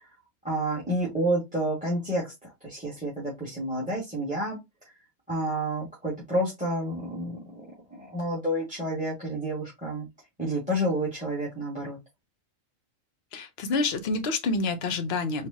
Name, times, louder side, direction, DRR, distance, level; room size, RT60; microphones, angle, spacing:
voice 1, 0.4-4.6 5.3-7.6 7.9-10.1 10.4-12.0, right 1 dB, 5° right, 1.5 m, -29 dB
voice 2, 13.3-15.5, left 3 dB, 55° left, 0.9 m, -28 dB
4.5 x 2.5 x 2.7 m
omnidirectional pair, 1.4 m